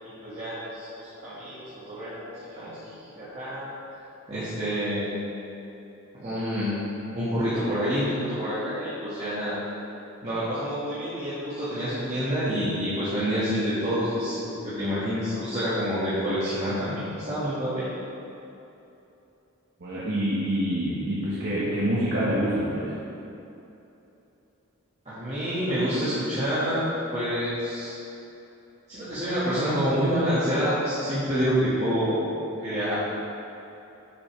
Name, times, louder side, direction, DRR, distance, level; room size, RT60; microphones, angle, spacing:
voice 1, 0.0-3.7 4.3-5.3 6.1-6.8 7.1-9.6 10.2-17.9 25.1-26.8 27.1-27.9 28.9-32.2 32.6-32.9, equal, 30° right, -13 dB, 1.7 m, -28 dB
voice 2, 19.8-22.9, equal, 50° right, -8 dB, 1.3 m, -26 dB
9.7 x 6.8 x 3.3 m, 2.9 s
head